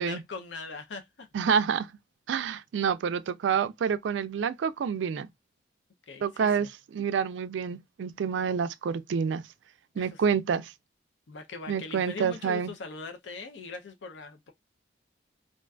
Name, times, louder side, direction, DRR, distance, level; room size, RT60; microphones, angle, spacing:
voice 1, 0.0-1.3 6.1-6.7 9.9-10.4 11.3-14.5, left 4 dB, 80° left, 0.5 m, -41 dB
voice 2, 1.3-1.9 2.3-5.3 6.2-9.4 10.0-10.7 11.7-12.7, right 7 dB, 85° right, 0.3 m, -28 dB
2.4 x 2.3 x 2.2 m
head